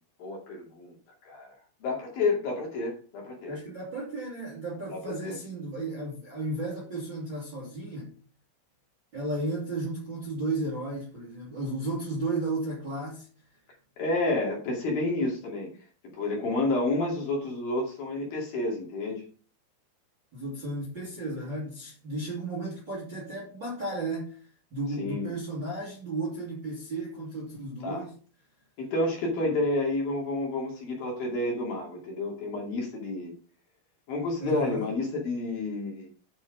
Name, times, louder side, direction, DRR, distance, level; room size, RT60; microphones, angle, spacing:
voice 1, 0.2-1.0 1.3-1.6 1.8-3.6 4.9-5.4 14.0-15.7 16.0-19.3 25.0-25.3 27.8-28.1 28.8-33.3 34.1-36.1, left 2 dB, 55° left, 3.8 m, -30 dB
voice 2, 3.5-8.1 9.1-13.3 20.3-24.4 24.7-28.1 34.4-34.9, right 2 dB, 30° right, 2.7 m, -34 dB
9.5 x 6.1 x 5.3 m
omnidirectional pair, 5.6 m